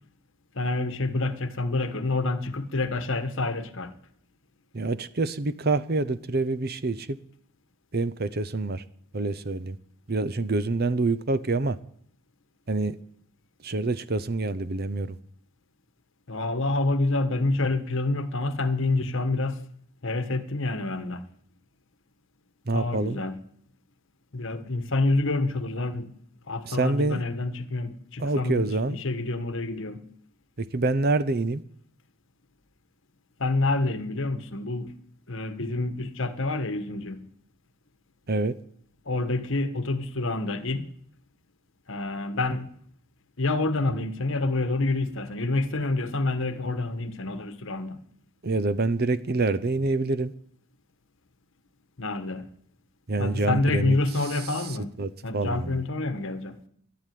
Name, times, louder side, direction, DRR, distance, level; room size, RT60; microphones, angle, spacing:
voice 1, 0.5-3.9 16.3-19.6 20.0-21.3 22.7-23.4 24.3-26.1 26.5-30.0 33.4-34.9 35.3-37.3 39.1-40.9 41.9-42.7 43.4-48.0 52.0-52.5 53.2-54.9 55.2-56.6, left 2 dB, 60° left, 1.3 m, -27 dB
voice 2, 4.7-7.2 7.9-8.8 9.1-9.8 10.1-11.8 12.7-13.0 13.6-15.2 22.7-23.2 26.6-27.2 28.2-29.0 30.6-31.6 38.3-38.6 48.4-50.3 53.1-54.0 54.3-55.8, right 3 dB, 45° right, 0.7 m, -26 dB
12.5 x 11.5 x 9.4 m
head